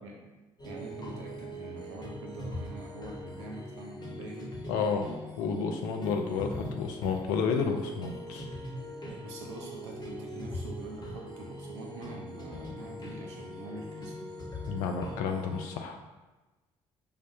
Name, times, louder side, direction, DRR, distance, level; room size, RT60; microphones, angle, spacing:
sound 1, 0.6-15.7, left 1 dB, 30° left, 1.0 m, -41 dB
voice 1, 0.6-4.6 9.0-14.2, right 1 dB, 90° right, -1 dB, 0.6 m, -44 dB
voice 2, 4.7-5.1 5.4-8.5 14.7-16.0, left 5 dB, 75° left, 4 dB, 0.5 m, -31 dB
4.9 x 2.1 x 2.6 m, 1.1 s
hypercardioid pair, 55°, 14 cm